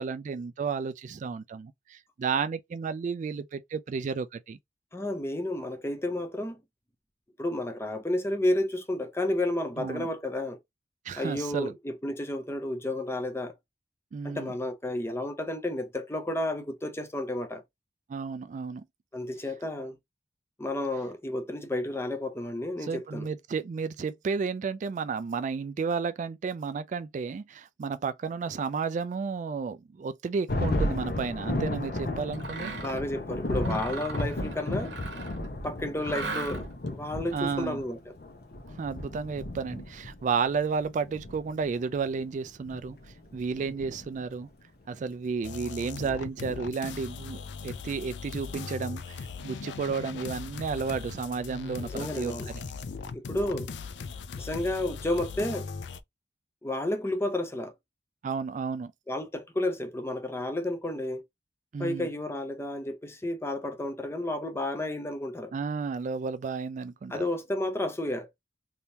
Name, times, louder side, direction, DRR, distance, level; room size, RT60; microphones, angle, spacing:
voice 1, 0.0-4.6 9.8-10.1 11.1-11.7 14.1-14.5 18.1-18.8 22.8-32.8 37.3-37.8 38.7-43.0 43.3-44.5 44.9-52.3 58.2-58.9 61.7-62.1 65.5-67.2, right 5 dB, 45° right, 0.3 m, -32 dB
voice 2, 4.9-6.6 7.4-10.6 11.2-13.6 14.2-17.6 19.1-20.0 20.6-23.3 32.8-34.9 35.6-38.2 51.9-52.5 53.1-53.7 54.4-55.7 56.6-57.7 59.1-61.2 61.8-65.5 67.1-68.3, left 1 dB, 15° left, 0.6 m, -31 dB
Thunder, 30.5-44.4, left 1 dB, 60° left, 0.8 m, -34 dB
Mechanisms, 32.3-33.0 33.5-35.5 36.0-36.9, right 3 dB, 80° right, 1.0 m, -38 dB
sound 1, 45.4-56.0, left 5 dB, 80° left, 0.4 m, -39 dB
3.5 x 2.7 x 2.8 m
head